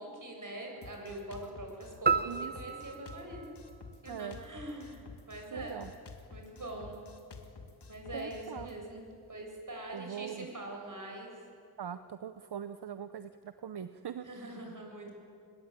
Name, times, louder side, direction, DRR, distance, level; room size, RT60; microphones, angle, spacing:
voice 1, 0.0-3.6 4.0-5.8 6.3-7.0 7.9-11.4 14.2-15.1, right 1 dB, 50° right, 1 dB, 7.1 m, -43 dB
Drum kit, 0.8-8.8, left 4 dB, 85° left, 2.1 m, -51 dB
sound 1, 2.1-4.5, right 5 dB, 25° right, 0.9 m, -33 dB
voice 2, 4.1-4.4 5.5-5.9 8.1-8.7 9.9-10.5 11.8-14.6, right 8 dB, 80° right, 11 dB, 0.8 m, -42 dB
25.5 x 21.5 x 9.0 m, 2.5 s
wide cardioid pair, 65°, 39 cm